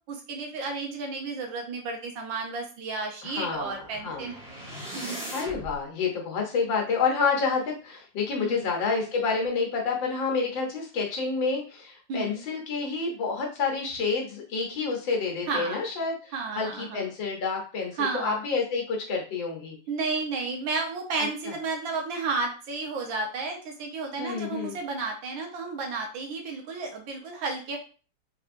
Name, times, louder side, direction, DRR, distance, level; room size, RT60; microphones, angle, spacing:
voice 1, 0.1-4.4 4.9-5.2 8.4-8.7 12.1-12.4 15.5-15.8 16.3-17.0 18.0-18.4 19.9-27.8, right 4 dB, 85° right, 2 dB, 1.6 m, -32 dB
voice 2, 3.2-4.3 5.3-19.8 21.2-21.5 24.2-24.8, left 4 dB, 85° left, 0 dB, 1.8 m, -29 dB
sound 1, 3.6-5.8, right 1 dB, 5° right, 1.3 m, -39 dB
4.0 x 3.4 x 2.5 m, 0.37 s
omnidirectional pair, 2.0 m